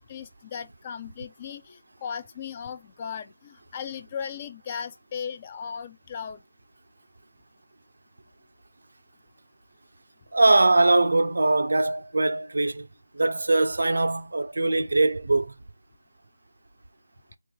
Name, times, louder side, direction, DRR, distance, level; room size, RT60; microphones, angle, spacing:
voice 1, 0.1-6.4, left 7 dB, 30° left, 0.4 m, -37 dB
voice 2, 10.3-12.9 13.1-15.5, right 2 dB, 75° right, 0.4 m, -22 dB
3.0 x 2.3 x 3.1 m
figure-of-eight pair, 160°, 0 cm